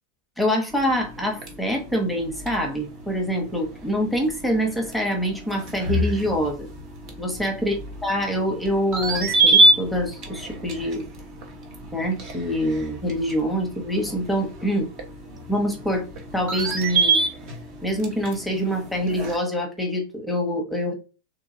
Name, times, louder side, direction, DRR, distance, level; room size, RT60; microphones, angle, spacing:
voice 1, 0.4-6.7 7.2-7.8 8.0-11.0 11.9-14.9 15.5-16.0 16.3-17.2 17.8-20.9, equal, ahead, 2 dB, 1.0 m, -25 dB
sound 1, 0.7-19.4, right 2 dB, 40° right, 1.0 m, -27 dB
3.7 x 3.1 x 2.6 m, 0.31 s
figure-of-eight pair, 90°, 0 cm